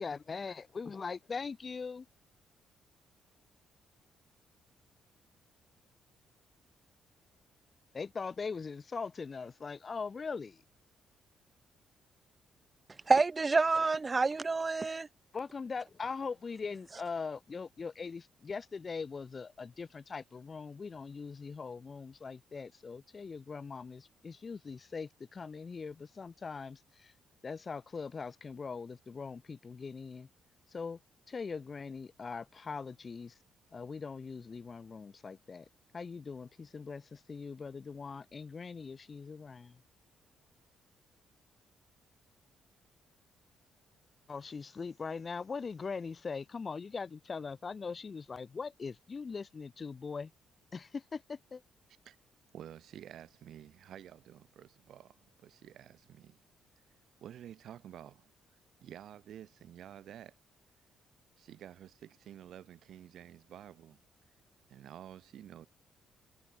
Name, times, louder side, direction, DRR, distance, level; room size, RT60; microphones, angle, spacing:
voice 1, 0.0-2.0 7.9-10.6 15.3-27.1 27.4-30.3 30.7-31.0 31.3-33.3 33.7-35.7 35.9-39.7 44.3-50.3 50.7-51.6, left 5 dB, 35° left, 1.7 m, -41 dB
voice 2, 13.1-15.1, right 4 dB, 30° right, 0.4 m, -28 dB
voice 3, 52.5-56.4 57.2-58.3 58.8-60.4 61.4-64.0 64.7-65.7, right 10 dB, 70° right, 2.3 m, -50 dB
cardioid pair, 90°, 0 cm